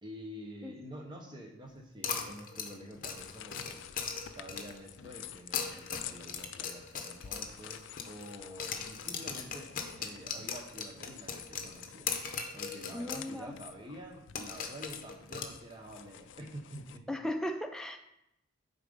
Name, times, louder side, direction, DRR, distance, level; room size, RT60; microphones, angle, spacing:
voice 1, 0.0-3.8 4.3-12.1 12.5-17.1, equal, 20° right, 1 dB, 1.0 m, -48 dB
sound 1, 2.0-4.9 5.4-8.3 8.6-13.3 13.6-13.7 14.3-16.0, left 6 dB, 40° left, 0.8 m, -39 dB
sound 2, 2.9-17.0, left 10 dB, 65° left, 0.4 m, -50 dB
voice 2, 12.9-13.5 17.1-18.0, left 1 dB, 5° left, 4 dB, 0.5 m, -36 dB
8.4 x 4.1 x 5.4 m, 0.82 s
head